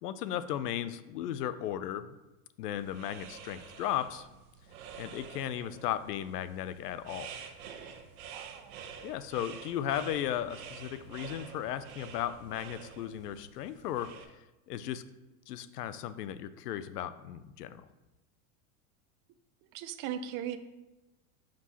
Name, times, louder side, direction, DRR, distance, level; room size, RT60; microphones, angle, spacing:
voice 1, 0.0-2.2 2.6-4.3 5.0-7.3 9.0-14.1 14.7-15.0 15.5-17.9, left 11 dB, 85° left, 14 dB, 0.6 m, -36 dB
sound 1, 2.7-14.2, right 7 dB, 70° right, 1.0 m, -48 dB
voice 2, 8.3-8.8 19.7-20.6, right 10 dB, 45° right, 11 dB, 0.6 m, -38 dB
5.4 x 5.2 x 4.1 m, 1.0 s
hypercardioid pair, 110°, 46 cm